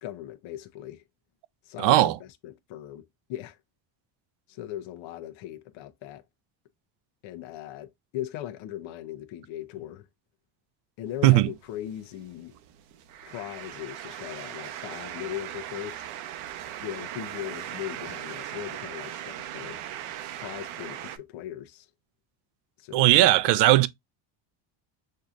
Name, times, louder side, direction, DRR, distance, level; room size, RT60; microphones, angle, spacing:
voice 1, 0.0-1.0 1.6-3.6 4.5-6.2 7.2-10.1 11.0-12.5 13.2-16.0 16.8-19.8 20.4-21.9 22.8-23.6, left 12 dB, 70° left, 0.9 m, -39 dB
voice 2, 1.8-2.2 11.2-11.5 22.9-23.9, right 16 dB, 60° right, 0.6 m, -18 dB
sound 1, 11.1-21.2, right 11 dB, 80° right, 0.9 m, -39 dB
6.4 x 2.8 x 2.4 m
cardioid pair, 155°, 48 cm